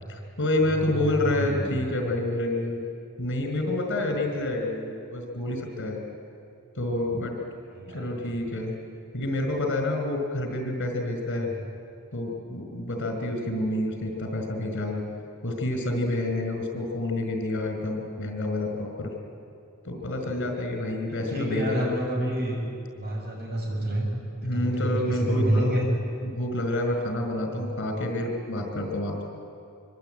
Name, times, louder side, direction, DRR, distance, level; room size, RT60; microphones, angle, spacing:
voice 1, 0.1-2.8 3.2-6.0 6.7-7.4 7.9-8.8 9.1-11.5 12.1-15.0 15.4-19.1 19.8-21.9 24.4-25.8 26.2-29.2, left 1 dB, 55° left, 3 dB, 5.0 m, -28 dB
voice 2, 0.6-1.7 7.7-8.2 11.4-11.5 21.1-22.6 22.9-24.1 24.4-25.9 27.4-27.8, right 1 dB, 45° right, 0 dB, 6.8 m, -29 dB
24.5 x 24.5 x 9.1 m, 2.5 s
head